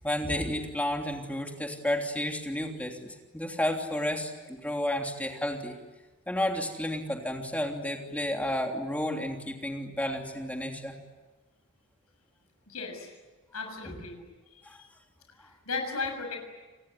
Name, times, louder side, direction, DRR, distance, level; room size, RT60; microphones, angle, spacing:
voice 1, 0.0-5.8 6.3-11.0 13.8-13.9 14.6-14.8 15.4-15.5, left 1 dB, 5° left, 2 dB, 3.1 m, -32 dB
voice 2, 12.7-13.1 13.5-14.2 14.5-14.9 15.3-16.4, left 4 dB, 75° left, 4 dB, 7.0 m, -36 dB
29.5 x 20.5 x 9.8 m, 1.2 s
head